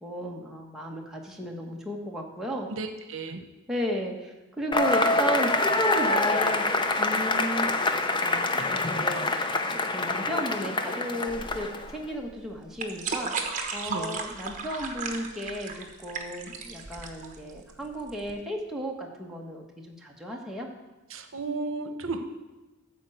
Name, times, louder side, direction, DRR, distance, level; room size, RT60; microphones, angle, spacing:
voice 1, 0.0-2.7 3.7-6.6 7.0-7.7 8.2-9.3 9.7-13.3 13.7-20.7, equal, ahead, -2 dB, 1.3 m, -34 dB
voice 2, 2.7-3.4 13.8-14.2 21.1-22.2, right 3 dB, 75° right, 7 dB, 0.9 m, -33 dB
Cheering / Applause / Crowd, 4.7-12.0, left 2 dB, 25° left, 0.6 m, -26 dB
sound 1, 11.3-18.3, right 4 dB, 40° right, 1.1 m, -35 dB
13.5 x 4.6 x 7.8 m, 1.1 s
head